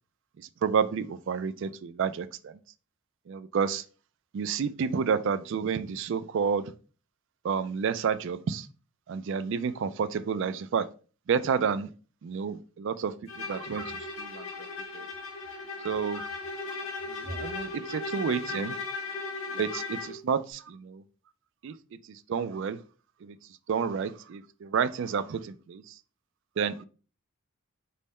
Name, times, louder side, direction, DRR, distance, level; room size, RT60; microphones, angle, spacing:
voice 1, 0.6-2.5 3.3-3.8 4.3-6.7 7.4-8.7 9.1-10.9 11.3-11.9 12.2-14.7 14.9-15.1 15.8-16.3 17.1-18.8 19.6-21.0 21.6-21.7 22.3-22.8 23.2-23.4 23.7-25.8 26.6-26.8, right 6 dB, 55° right, 0.3 m, -30 dB
Bowed string instrument, 13.3-20.2, left 3 dB, 65° left, 1.3 m, -37 dB
5.4 x 2.1 x 4.1 m
head